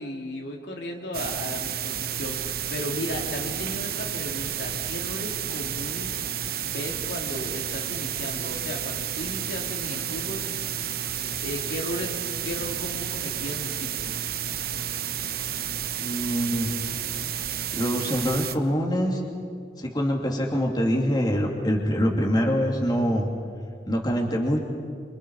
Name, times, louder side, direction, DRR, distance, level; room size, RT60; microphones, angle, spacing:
voice 1, 0.0-6.2 6.6-10.4 11.4-12.1 12.4-14.1, left 1 dB, 75° left, 1 dB, 2.7 m, -35 dB
sound 1, 1.1-18.6, right 9 dB, 55° right, 0.9 m, -31 dB
voice 2, 16.0-16.7 17.7-19.2 19.8-23.3 23.8-24.6, equal, 25° left, -1 dB, 2.8 m, -24 dB
27.0 x 26.0 x 4.9 m, 2.3 s
head